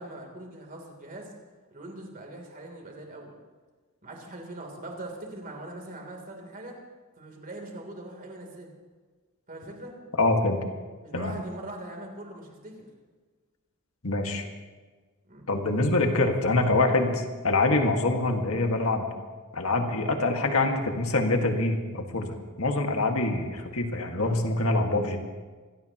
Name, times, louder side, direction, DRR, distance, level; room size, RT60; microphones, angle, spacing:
voice 1, 0.0-1.3 1.7-3.4 4.0-6.8 7.2-8.7 9.5-10.0 11.0-12.8 15.3-15.4, right 1 dB, 40° right, 1 dB, 3.4 m, -41 dB
voice 2, 10.2-10.6 11.1-11.3 14.0-14.5 15.5-19.1 19.5-25.2, left 2 dB, 70° left, 3 dB, 2.0 m, -25 dB
25.0 x 16.5 x 3.1 m, 1.4 s
head